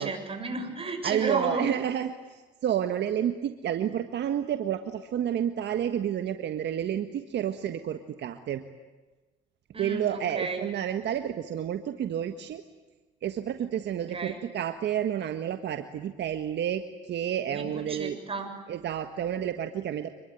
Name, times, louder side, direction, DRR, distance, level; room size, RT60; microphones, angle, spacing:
voice 1, 0.0-1.7 9.7-10.6 14.1-14.4 17.5-18.5, right 3 dB, 30° right, 5 dB, 7.3 m, -33 dB
voice 2, 1.0-8.6 9.8-12.6 13.2-18.2 18.7-20.1, right 10 dB, 65° right, 8 dB, 1.6 m, -30 dB
27.0 x 22.0 x 9.4 m, 1.2 s
cardioid pair, 90°, 19 cm